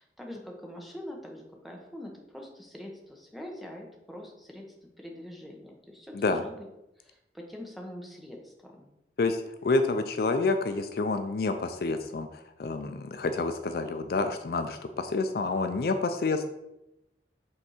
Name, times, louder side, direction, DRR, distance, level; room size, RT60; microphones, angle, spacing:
voice 1, 0.0-6.7 7.0-8.9, left 1 dB, ahead, 0 dB, 0.9 m, -44 dB
voice 2, 9.2-16.4, left 3 dB, 55° left, 8 dB, 0.4 m, -28 dB
5.4 x 3.4 x 5.6 m, 0.88 s
head